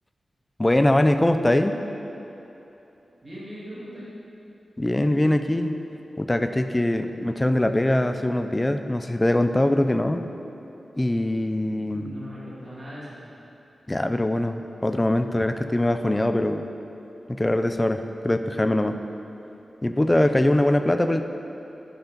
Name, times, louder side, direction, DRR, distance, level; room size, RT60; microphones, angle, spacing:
voice 1, 0.6-1.8 4.8-5.8 6.2-10.3 11.0-12.1 13.9-16.7 17.3-19.0 19.8-21.2, left 1 dB, 15° left, 8 dB, 0.4 m, -22 dB
voice 2, 3.2-4.1 11.9-13.2, equal, 25° right, -8 dB, 2.2 m, -39 dB
9.8 x 7.0 x 5.6 m, 3.0 s
wide cardioid pair, 160°, 0 cm